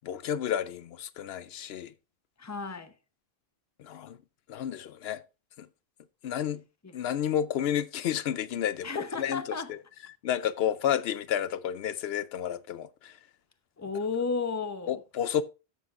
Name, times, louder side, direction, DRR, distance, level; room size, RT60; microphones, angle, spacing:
voice 1, 0.0-1.9 3.8-4.2 4.5-5.2 5.6-5.7 6.2-6.6 6.9-9.4 9.7-9.8 10.2-13.2 14.9-15.4, left 9 dB, 80° left, 0.8 m, -31 dB
voice 2, 2.4-2.9 6.8-6.9 8.8-9.7 13.8-15.0, left 4 dB, 20° left, 0.8 m, -33 dB
13.0 x 7.2 x 2.5 m
omnidirectional pair, 1.0 m